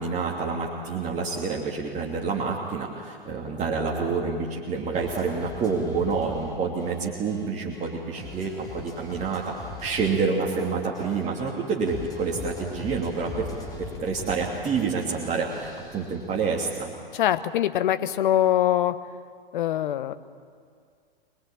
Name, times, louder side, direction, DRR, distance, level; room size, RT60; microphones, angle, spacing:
voice 1, 0.0-9.5 9.8-13.5 13.8-16.9, right 4 dB, 25° right, -2 dB, 2.9 m, -28 dB
sound 1, 4.9-16.9, left 2 dB, 10° left, 5.4 m, -41 dB
voice 2, 17.1-19.0 19.5-20.1, left 11 dB, 55° left, 11 dB, 1.3 m, -23 dB
25.5 x 21.5 x 9.0 m, 2.1 s
figure-of-eight pair, 105°, 30 cm